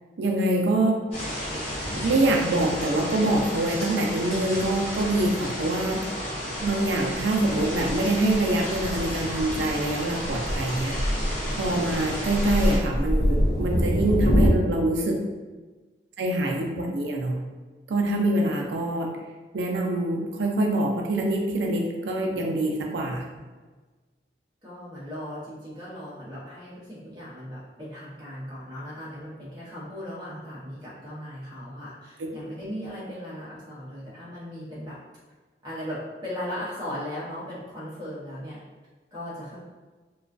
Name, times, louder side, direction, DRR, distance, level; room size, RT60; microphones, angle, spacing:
voice 1, 0.2-1.0 1.5-1.6 2.0-6.1 6.6-11.0 11.6-15.3 16.2-17.4 17.9-19.1 19.5-23.2 32.2-32.3, right 1 dB, 90° right, 1 dB, 0.4 m, -25 dB
sound 1, 1.1-12.8, equal, 35° left, 0.9 m, -32 dB
Thunder, 6.6-14.5, equal, 55° left, 0.5 m, -26 dB
voice 2, 16.2-16.7 23.2-23.4 24.6-35.0 35.6-36.0 36.2-38.6 39.1-39.7, equal, 25° right, -9 dB, 0.6 m, -37 dB
2.3 x 2.2 x 2.4 m, 1.3 s
head